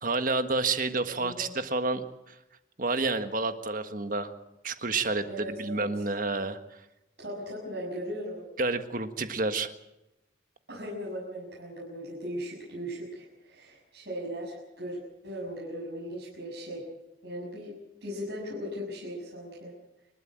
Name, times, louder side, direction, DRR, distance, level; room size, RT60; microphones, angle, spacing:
voice 1, 0.0-2.3 2.8-4.3 4.6-6.6 8.6-9.7, right 3 dB, 45° right, 9 dB, 1.6 m, -29 dB
voice 2, 1.1-1.6 5.3-5.9 7.2-8.5 10.7-16.8 17.2-19.7, equal, 60° right, -5 dB, 6.9 m, -38 dB
28.5 x 13.0 x 8.8 m, 0.92 s
head